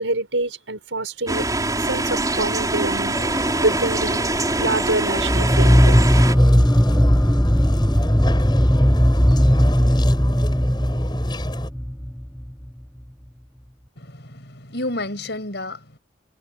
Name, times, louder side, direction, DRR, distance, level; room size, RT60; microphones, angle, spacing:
voice 1, 0.0-1.5 1.8-3.2 3.6-4.2 4.6-6.0, right 2 dB, 80° right, 5.3 m, -25 dB
sound 1, 1.3-6.3, right 2 dB, 20° right, 6.4 m, -23 dB
sound 2, 3.1-11.7, left 1 dB, 25° left, 7.9 m, -33 dB
sound 3, 5.2-12.5, equal, 5° left, 0.5 m, -17 dB
voice 2, 14.0-16.0, left 1 dB, 60° left, 6.4 m, -31 dB
head